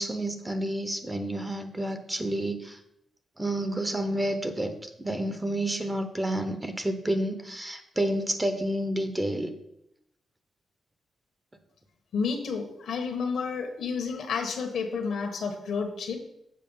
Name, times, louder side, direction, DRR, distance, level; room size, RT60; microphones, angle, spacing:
voice 1, 0.0-2.8 3.4-9.5, right 1 dB, 15° right, 8 dB, 0.8 m, -30 dB
voice 2, 12.1-16.2, left 5 dB, 80° left, 5 dB, 1.3 m, -30 dB
7.7 x 4.6 x 5.5 m, 0.79 s
cardioid pair, 95°, 0 cm